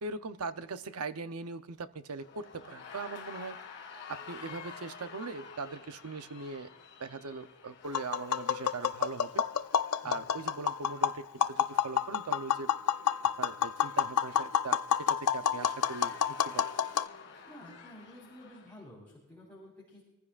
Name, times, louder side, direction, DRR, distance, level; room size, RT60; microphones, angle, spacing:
voice 1, 0.0-3.6 4.1-6.7 7.0-9.4 10.0-12.7 13.4-16.7, right 4 dB, 80° right, 10 dB, 0.8 m, -40 dB
sound 1, 2.2-18.8, left 5 dB, 55° left, 2.4 m, -51 dB
Tap, 7.8-17.1, left 8 dB, 90° left, 0.5 m, -29 dB
voice 2, 17.5-20.0, left 1 dB, 5° left, -7 dB, 4.1 m, -51 dB
24.5 x 15.0 x 2.5 m, 0.99 s
head